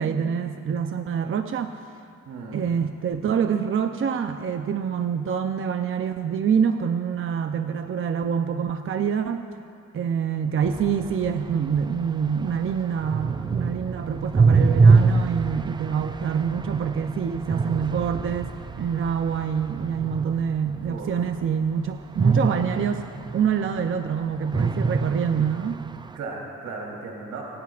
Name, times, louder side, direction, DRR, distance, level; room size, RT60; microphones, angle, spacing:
voice 1, 0.0-1.7 2.5-9.4 9.9-18.5 18.8-23.0 23.3-25.8, right 7 dB, 45° right, 7 dB, 0.7 m, -26 dB
voice 2, 2.3-2.6 20.8-21.3 26.1-27.4, right 3 dB, 75° right, -2 dB, 3.6 m, -36 dB
sound 1, 10.6-20.9 22.2-24.1 24.4-26.1, right 4 dB, 15° right, 0.4 m, -24 dB
26.5 x 19.0 x 2.5 m, 2.5 s
cardioid pair, 90°, 30 cm